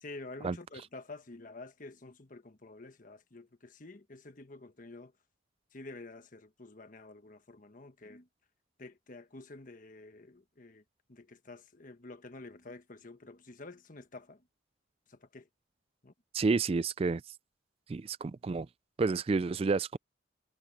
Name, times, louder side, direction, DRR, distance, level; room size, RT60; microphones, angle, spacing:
voice 1, 0.0-5.1 5.7-8.3 8.8-10.8 11.1-14.4 15.1-15.5 16.0-16.1, left 2 dB, 45° left, 1.3 m, -49 dB
voice 2, 16.3-17.2 17.9-18.7 19.0-20.0, right 4 dB, 30° right, 0.3 m, -30 dB
head